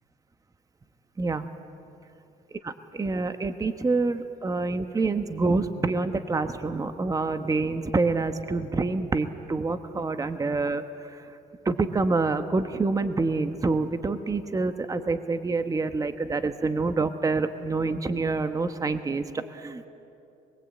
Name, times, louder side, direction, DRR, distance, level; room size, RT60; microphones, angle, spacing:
voice 1, 1.2-1.5 2.6-11.3 11.6-19.9, right 3 dB, 20° right, 9 dB, 1.1 m, -27 dB
26.5 x 21.5 x 8.5 m, 2.8 s
cardioid pair, 110°, 17 cm